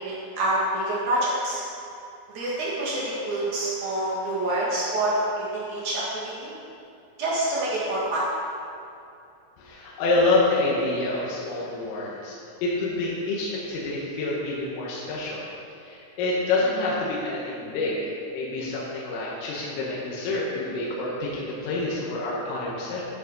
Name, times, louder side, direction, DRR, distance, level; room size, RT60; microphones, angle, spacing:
voice 1, 0.0-1.6 2.3-6.5 7.2-8.2, right 1 dB, 65° right, -6 dB, 1.9 m, -27 dB
voice 2, 9.6-12.4 12.6-15.5 15.8-23.0, left 2 dB, 80° left, -5 dB, 3.9 m, -27 dB
11.5 x 6.7 x 5.3 m, 2.6 s
omnidirectional pair, 5.9 m